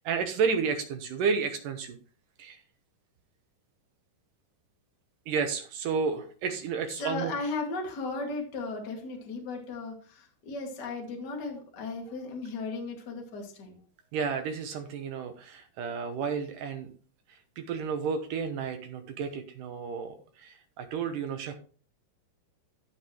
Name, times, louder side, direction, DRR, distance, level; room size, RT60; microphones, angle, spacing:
voice 1, 0.0-2.0 2.4-2.6 5.3-7.3 14.1-16.9 17.3-21.6, right 5 dB, 70° right, 7 dB, 2.2 m, -31 dB
voice 2, 7.0-13.8, left 3 dB, 35° left, 1 dB, 2.2 m, -36 dB
15.0 x 5.4 x 3.1 m, 0.39 s
omnidirectional pair, 4.5 m